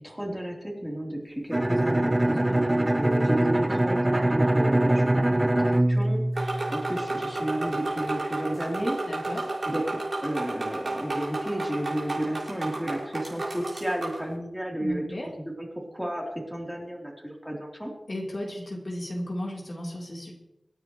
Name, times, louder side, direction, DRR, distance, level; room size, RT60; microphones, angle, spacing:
voice 1, 0.0-5.3 5.7-9.0 9.6-17.9, right 1 dB, 5° right, -2 dB, 3.7 m, -33 dB
Bowed string instrument, 1.5-7.2, right 1 dB, 20° right, 0.7 m, -23 dB
voice 2, 2.2-2.6 9.0-9.5 14.8-15.3 18.1-20.3, left 1 dB, 55° left, -3 dB, 3.7 m, -35 dB
sound 1, 6.3-14.2, right 2 dB, 65° right, 5.9 m, -32 dB
26.5 x 10.0 x 3.2 m, 0.93 s
wide cardioid pair, 70°, 0 cm